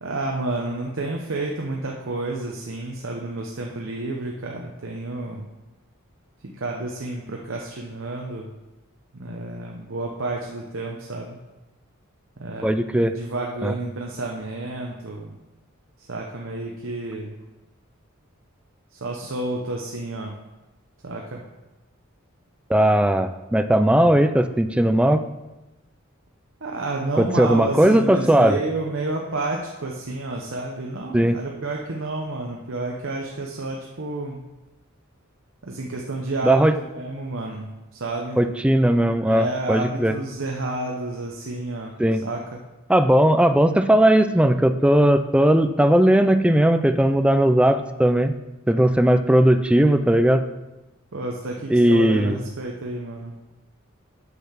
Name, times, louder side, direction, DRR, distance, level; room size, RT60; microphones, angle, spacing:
voice 1, 0.0-5.5 6.6-8.5 9.1-11.4 12.4-15.4 16.0-17.3 18.9-20.4 21.0-21.4 26.6-34.4 35.6-38.4 39.2-42.6 51.1-53.4, right 2 dB, 60° right, 0 dB, 0.8 m, -30 dB
voice 2, 12.6-13.2 13.6-13.7 22.7-25.2 27.2-28.6 31.1-31.4 36.4-36.7 38.4-40.2 42.0-42.2 42.9-48.3 48.7-50.5 51.7-52.4, right 1 dB, 5° right, 9 dB, 0.3 m, -18 dB
6.9 x 6.6 x 5.7 m, 1.1 s
head